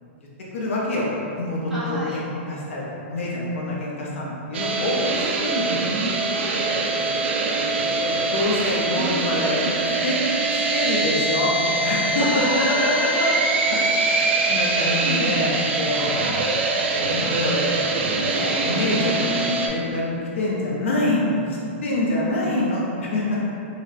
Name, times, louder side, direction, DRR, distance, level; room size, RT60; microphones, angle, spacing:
voice 1, 0.5-5.8 6.7-6.9 7.4-10.2 10.5-12.4 13.2-13.3 13.7-16.3 16.7-23.4, left 2 dB, 80° left, -5 dB, 0.6 m, -26 dB
voice 2, 1.7-2.2 5.0-5.4 6.2-6.7 12.2-12.3 12.6-13.1 15.9-16.5 19.0-19.1, equal, 5° right, -12 dB, 0.6 m, -31 dB
sound 1, 4.5-19.7, right 3 dB, 65° right, 0.4 m, -23 dB
4.0 x 2.1 x 2.6 m, 2.7 s
hypercardioid pair, 170°, 7 cm